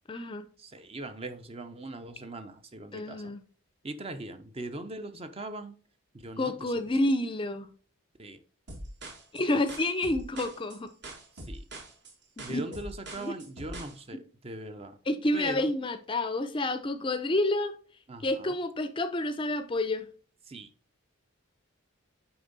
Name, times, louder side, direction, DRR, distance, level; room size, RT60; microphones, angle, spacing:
voice 1, 0.1-0.5 2.9-3.4 6.4-7.7 9.3-10.9 12.4-12.5 13.2-13.3 15.1-17.7 18.2-20.1, left 1 dB, 25° left, 0.5 m, -29 dB
voice 2, 0.6-3.3 3.8-5.8 6.1-6.9 8.2-8.4 11.4-11.6 12.4-15.0 15.3-15.7 18.1-18.6 20.4-20.7, right 2 dB, 30° right, 0.6 m, -40 dB
sound 1, 8.7-14.0, right 1 dB, 55° right, 1.5 m, -43 dB
8.8 x 3.5 x 3.9 m
head